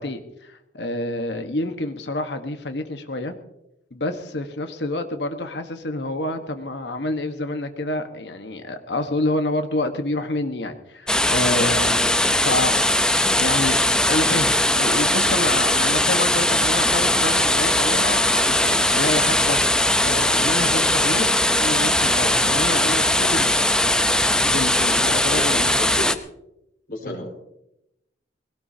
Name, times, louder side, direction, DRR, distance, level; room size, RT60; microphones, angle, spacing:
voice 1, 0.0-3.3 3.9-12.2 12.4-12.7 13.4-13.8 14.1-23.4 24.4-26.0 27.0-27.2, left 2 dB, 75° left, 7 dB, 1.3 m, -28 dB
sound 1, 11.1-26.1, left 1 dB, 5° left, 0.7 m, -20 dB
voice 2, 25.3-26.1 26.9-27.3, left 1 dB, 55° left, 1 dB, 4.8 m, -32 dB
21.0 x 18.0 x 2.8 m, 0.84 s
head